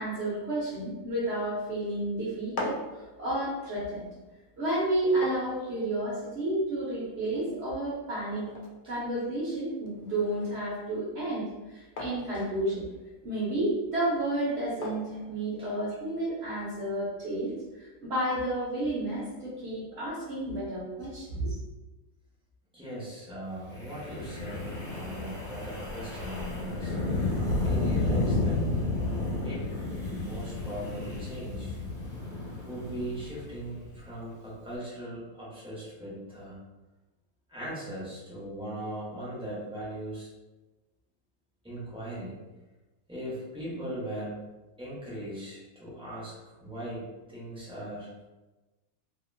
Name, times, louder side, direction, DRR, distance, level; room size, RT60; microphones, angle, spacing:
voice 1, 0.0-4.1 4.6-8.5 8.9-12.8 13.2-21.6, right 1 dB, 50° right, -9 dB, 1.0 m, -31 dB
sound 1, 2.3-16.2, left 2 dB, 70° left, 0.9 m, -45 dB
voice 2, 22.7-24.7 25.0-27.0 27.6-28.6 29.3-29.8 30.0-31.8 32.7-36.5 37.5-40.3 41.6-42.4 43.1-44.5 44.8-48.1, right 1 dB, 5° right, -9 dB, 0.7 m, -39 dB
Wind, 23.7-34.0, left 2 dB, 55° left, 1.2 m, -32 dB
2.8 x 2.6 x 2.6 m, 1.1 s
omnidirectional pair, 1.7 m